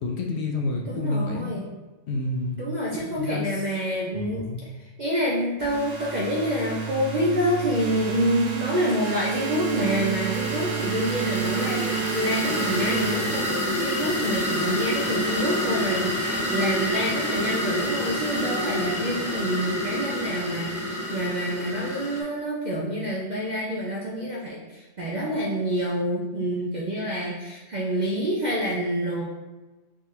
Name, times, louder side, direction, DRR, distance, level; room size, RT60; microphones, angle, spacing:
voice 1, 0.0-1.5 2.1-2.6 3.0-3.6 4.1-4.7, left 2 dB, 65° left, 1 dB, 0.8 m, -29 dB
voice 2, 0.9-1.6 2.6-4.7 5.0-29.2, equal, 55° right, -4 dB, 0.5 m, -27 dB
sound 1, 5.6-13.9, right 8 dB, 80° right, 1.2 m, -31 dB
sound 2, 8.8-22.2, left 1 dB, 25° left, 0.3 m, -28 dB
3.7 x 2.4 x 4.2 m, 1.2 s
omnidirectional pair, 1.3 m